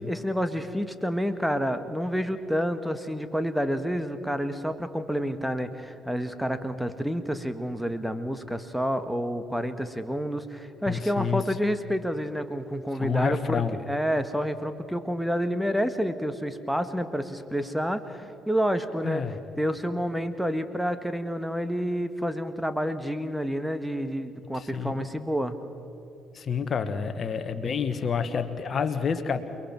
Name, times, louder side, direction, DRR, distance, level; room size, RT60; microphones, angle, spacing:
voice 1, 0.0-19.2 19.6-25.6, equal, ahead, 10 dB, 1.6 m, -29 dB
voice 2, 10.9-11.4 12.9-13.8 19.0-19.4 24.5-25.0 26.3-29.4, left 6 dB, 40° left, 10 dB, 1.5 m, -29 dB
29.0 x 21.5 x 4.6 m, 3.0 s
figure-of-eight pair, 45°, 0 cm